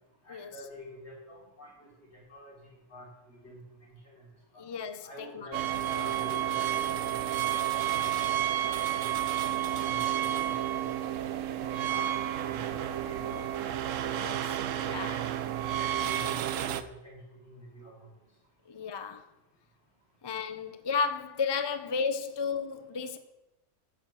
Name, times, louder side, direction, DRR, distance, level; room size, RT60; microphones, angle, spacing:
voice 1, 0.2-3.6 4.0-4.2 4.5-4.6 5.0-7.1 7.5-8.3 8.6-9.2 9.6-10.9 11.5-12.1 12.4-13.6 13.9-14.0 14.2-14.4 15.1-15.3 15.7-18.1, equal, 55° left, 4.6 m, -48 dB
voice 2, 4.6-5.6 14.2-14.6 14.9-15.3 18.7-19.3 20.2-23.2, left 5 dB, 35° left, 0.4 m, -33 dB
sound 1, 5.5-16.8, right 11 dB, 80° right, 1.0 m, -31 dB
9.8 x 6.4 x 7.5 m
omnidirectional pair, 1.3 m